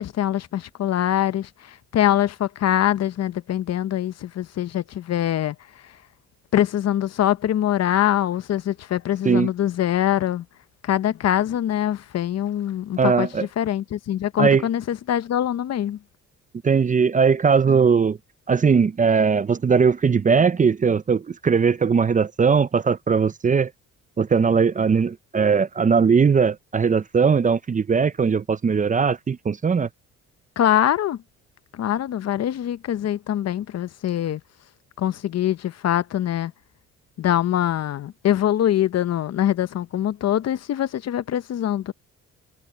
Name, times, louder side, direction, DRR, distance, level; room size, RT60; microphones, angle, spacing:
voice 1, 0.0-5.5 6.5-10.4 10.8-16.0 30.6-31.2 31.7-34.4 35.0-36.5 37.2-41.9, left 11 dB, 60° left, 0.8 m, -23 dB
voice 2, 13.0-13.5 14.4-14.6 16.6-18.2 18.5-23.7 24.2-29.9, right 5 dB, 25° right, 0.5 m, -19 dB
cardioid pair, 90°, 30 cm